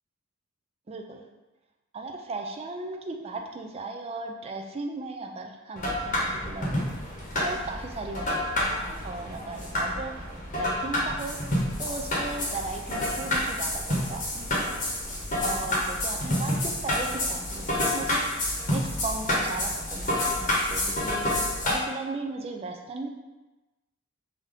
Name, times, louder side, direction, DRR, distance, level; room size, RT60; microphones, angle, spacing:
voice 1, 0.9-1.2 1.9-6.8 7.4-10.1 10.5-11.4 11.8-14.7 15.4-23.1, right 3 dB, 30° right, 3 dB, 0.3 m, -37 dB
sound 1, 5.8-21.8, left 1 dB, 40° left, 0.9 m, -29 dB
3.7 x 2.7 x 3.4 m, 1.1 s
head